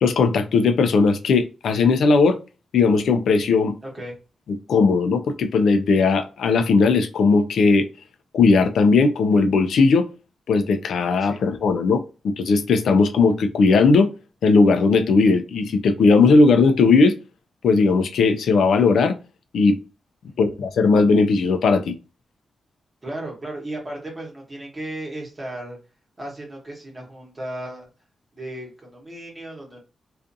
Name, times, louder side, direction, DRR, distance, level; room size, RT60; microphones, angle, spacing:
voice 1, 0.0-2.4 2.7-3.7 4.5-7.9 8.3-10.1 10.5-14.1 14.4-17.2 17.6-19.2 19.5-19.8 20.4-21.9, left 4 dB, 85° left, 0.3 m, -18 dB
voice 2, 3.8-4.2 11.2-11.4 20.3-20.5 23.0-25.8 26.2-27.9 28.3-29.8, right 1 dB, 20° right, 1.0 m, -35 dB
2.5 x 2.4 x 2.5 m
wide cardioid pair, 170°, 0 cm